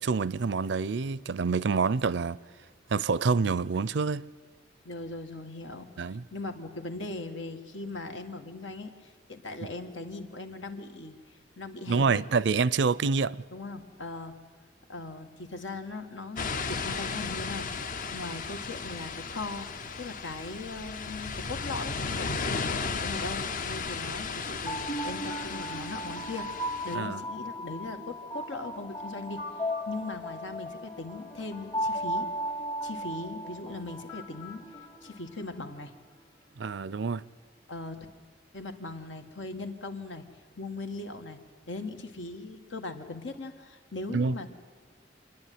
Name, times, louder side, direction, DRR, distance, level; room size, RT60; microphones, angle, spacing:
voice 1, 0.0-2.4 2.9-4.2 6.0-6.2 11.9-13.4 26.9-27.2 36.6-37.3 44.1-44.3, right 4 dB, 70° right, 0.5 m, -27 dB
voice 2, 4.9-6.0 6.3-11.2 11.6-12.2 13.5-14.4 14.9-19.7 20.0-29.4 29.9-32.3 32.8-34.6 35.0-35.9 37.7-38.1 38.5-40.2 40.6-41.4 41.7-44.5, left 2 dB, 85° left, 1.7 m, -39 dB
sound 1, 16.4-27.0, left 4 dB, 45° left, 0.7 m, -35 dB
sound 2, 24.4-35.5, equal, 30° left, 1.2 m, -36 dB
27.0 x 10.5 x 9.4 m
head